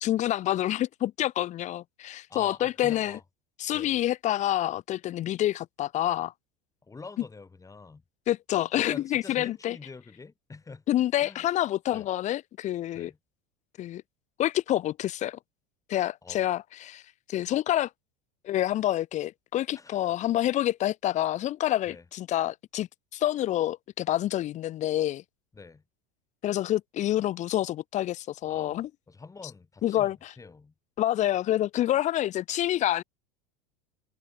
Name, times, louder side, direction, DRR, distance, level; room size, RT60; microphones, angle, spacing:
voice 1, 0.0-3.2 3.6-6.3 8.3-9.8 10.9-13.1 13.8-14.0 14.4-15.4 15.9-17.0 17.3-17.9 18.4-25.2 26.4-28.9 29.8-30.3 31.0-33.0, left 13 dB, 35° left, 0.6 m, -27 dB
voice 2, 2.3-3.2 3.7-3.9 6.8-8.0 8.7-10.8 11.2-11.5 11.9-12.1 12.9-13.2 16.2-16.4 19.8-20.2 21.9-22.0 25.5-25.8 28.4-30.7, left 4 dB, 15° left, 3.5 m, -46 dB
supercardioid pair, 105°, 21 cm